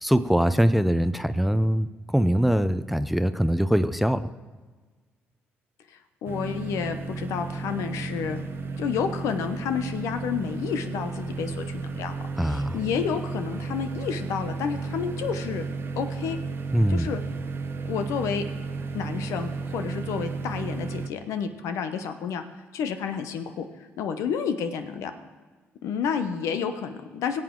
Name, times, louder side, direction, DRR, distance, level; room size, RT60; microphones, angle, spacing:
voice 1, 0.0-4.3 12.4-12.8 16.7-17.1, equal, ahead, 12 dB, 0.5 m, -23 dB
voice 2, 5.9-8.5 8.8-15.7 16.0-16.4 16.9-17.2 17.9-18.4 18.9-22.4 22.7-25.1 25.8-27.4, left 7 dB, 80° left, 8 dB, 0.9 m, -30 dB
sound 1, 6.2-21.1, right 4 dB, 50° right, 0.8 m, -33 dB
18.0 x 7.5 x 3.8 m, 1.3 s
supercardioid pair, 75°, 5 cm